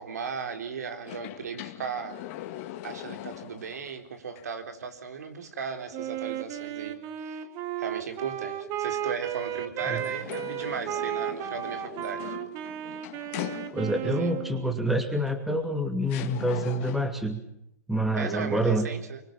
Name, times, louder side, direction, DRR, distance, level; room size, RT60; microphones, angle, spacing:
voice 1, 0.0-2.2 2.8-7.5 7.8-12.4 14.0-14.4 18.1-19.2, right 6 dB, 80° right, 7 dB, 4.0 m, -36 dB
sound 1, 1.0-3.9 4.4-4.5 9.8-14.2 15.3-15.4 16.1-17.3, left 14 dB, 50° left, 2.2 m, -41 dB
Wind instrument woodwind instrument, 5.9-14.8, right 11 dB, 40° right, 2.4 m, -34 dB
voice 2, 13.7-17.4 17.9-18.9, right 1 dB, ahead, 6 dB, 2.6 m, -27 dB
24.5 x 24.5 x 7.4 m, 0.73 s
hypercardioid pair, 120°, 9 cm